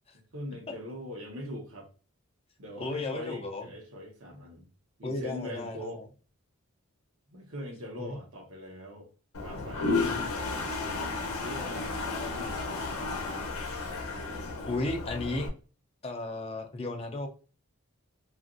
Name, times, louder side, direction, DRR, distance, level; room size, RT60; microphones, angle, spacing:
voice 1, 0.1-1.9 2.6-4.7 5.0-6.0 7.3-9.1 9.4-10.7 11.3-12.9, left 1 dB, 65° right, 0.9 m, -42 dB
voice 2, 2.8-3.6 5.0-5.9 8.0-8.2 10.0-10.2 14.6-15.5 16.0-17.3, left 2 dB, 25° left, 0.4 m, -34 dB
Toilet flush, 9.3-15.5, left 3 dB, 75° left, 0.7 m, -33 dB
2.8 x 2.5 x 2.5 m
head